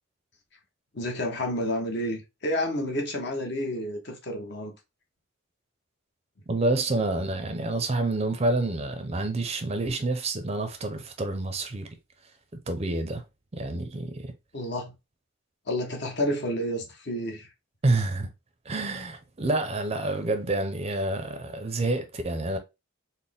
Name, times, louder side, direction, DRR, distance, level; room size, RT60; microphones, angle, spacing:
voice 1, 0.9-4.7 14.5-14.9 15.7-17.5, equal, 55° left, 0.9 m, -30 dB
voice 2, 6.5-11.9 12.7-13.2 13.5-14.3 17.8-18.3 18.7-22.6, right 2 dB, 30° right, 0.5 m, -28 dB
4.1 x 2.1 x 3.4 m
head